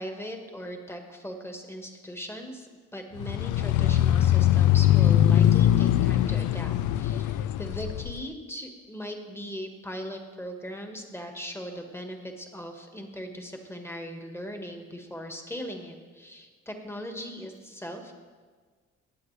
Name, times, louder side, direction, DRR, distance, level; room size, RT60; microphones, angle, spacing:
voice 1, 0.0-18.2, equal, 10° left, 4 dB, 1.5 m, -39 dB
sound 1, 3.2-8.2, left 12 dB, 80° left, 0.4 m, -22 dB
17.0 x 8.3 x 3.3 m, 1.5 s
cardioid pair, 90°, 30 cm